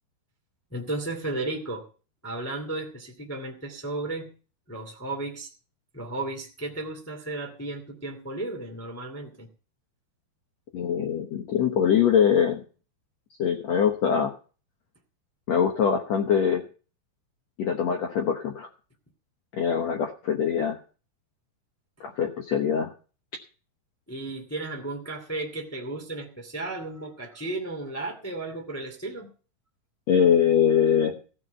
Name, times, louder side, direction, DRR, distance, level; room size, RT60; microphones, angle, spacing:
voice 1, 0.7-1.8 2.2-4.3 4.7-5.5 5.9-9.5 24.1-29.3, right 2 dB, 15° left, 1 dB, 0.5 m, -34 dB
voice 2, 10.7-12.6 13.4-14.3 15.5-16.6 17.6-18.7 19.5-20.8 22.0-22.9 30.1-31.2, left 8 dB, 80° left, 4 dB, 1.5 m, -23 dB
15.5 x 6.1 x 8.0 m, 0.37 s
omnidirectional pair, 4.8 m